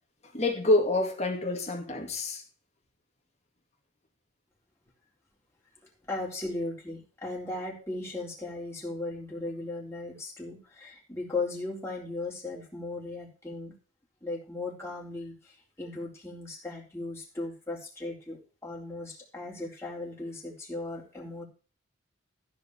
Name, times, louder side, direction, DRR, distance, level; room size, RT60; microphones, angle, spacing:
voice 1, 0.3-2.4, left 2 dB, 35° left, 2.4 m, -27 dB
voice 2, 6.1-13.7 14.2-21.4, left 2 dB, 15° left, 3.9 m, -37 dB
14.0 x 5.3 x 7.0 m
head